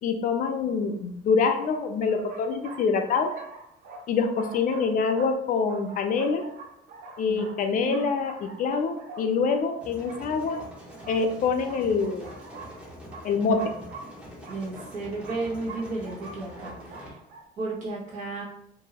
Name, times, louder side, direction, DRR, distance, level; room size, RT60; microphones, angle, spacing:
voice 1, 0.0-3.3 4.1-6.4 7.2-10.6 11.1-12.3 13.2-13.7, left 5 dB, 55° left, 6 dB, 0.5 m, -25 dB
sound 1, 0.8-0.9 1.6-17.4, right 3 dB, 65° right, 0.7 m, -46 dB
voice 2, 7.3-8.1 14.5-17.2 17.6-18.4, right 3 dB, 50° right, -5 dB, 1.4 m, -34 dB
sound 2, 9.8-17.1, equal, 5° right, 0.9 m, -45 dB
2.8 x 2.6 x 2.9 m, 0.76 s
cardioid pair, 110°, 17 cm